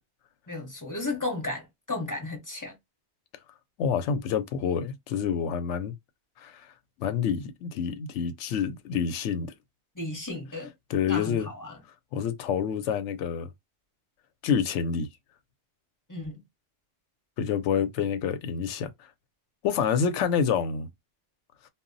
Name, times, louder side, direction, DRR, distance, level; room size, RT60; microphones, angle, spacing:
voice 1, 0.5-2.8 10.0-10.7 11.1-11.8 16.1-16.4, left 2 dB, 20° left, 0.7 m, -34 dB
voice 2, 3.8-5.9 6.4-6.6 7.0-9.5 10.9-11.5 12.1-13.5 14.4-15.1 17.4-18.9 19.6-20.9, left 7 dB, 85° left, 0.9 m, -27 dB
2.2 x 2.0 x 3.8 m
omnidirectional pair, 1.2 m